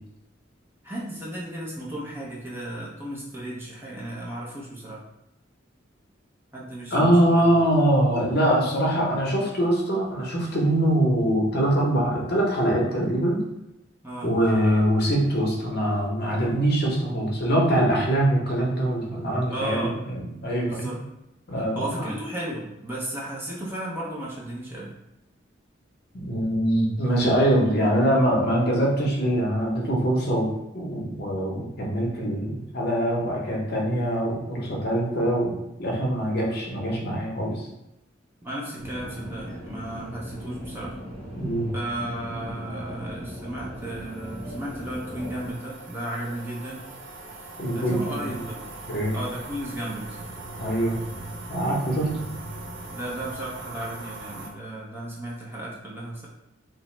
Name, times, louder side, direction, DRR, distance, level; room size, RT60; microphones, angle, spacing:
voice 1, 0.8-5.0 6.5-7.5 14.0-14.3 19.5-20.0 20.7-21.0 21.7-24.9 38.4-40.9 41.7-46.8 47.7-48.7 49.1-50.2 52.9-56.3, right 1 dB, 10° right, -6 dB, 0.5 m, -34 dB
voice 2, 6.9-13.4 14.2-21.0 21.5-22.1 26.1-30.5 30.7-37.7 41.4-41.7 47.6-48.4 48.9-49.1 50.6-51.0 51.5-52.1, right 1 dB, 55° left, -2 dB, 0.7 m, -23 dB
sound 1, 38.8-45.6, equal, 35° right, 1.1 m, -38 dB
sound 2, 43.7-54.5, right 2 dB, 70° right, 0.5 m, -40 dB
2.8 x 2.0 x 3.1 m, 0.91 s
head